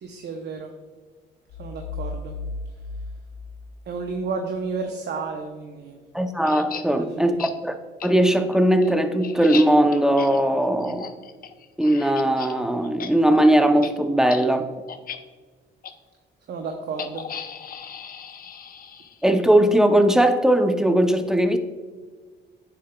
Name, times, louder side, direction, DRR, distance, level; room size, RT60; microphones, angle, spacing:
voice 1, 0.0-0.7 1.6-2.3 3.9-6.0 6.8-7.4 16.5-17.3, right 4 dB, 60° right, 3 dB, 0.7 m, -32 dB
sound 1, 1.5-4.2, left 3 dB, 85° left, 0.9 m, -35 dB
voice 2, 6.1-7.8 8.0-11.1 11.8-14.7 19.2-21.6, right 1 dB, 5° right, 7 dB, 0.6 m, -19 dB
sound 2, 6.5-6.8 7.4-7.5 8.0-8.1 8.5-12.5 12.8-13.1 13.4-13.5 13.8-13.9 14.3-14.4 14.9-15.2 15.8-15.9 17.0-19.3, left 7 dB, 50° left, 0.6 m, -36 dB
9.3 x 6.7 x 2.2 m, 1.5 s
cardioid pair, 90°, 20 cm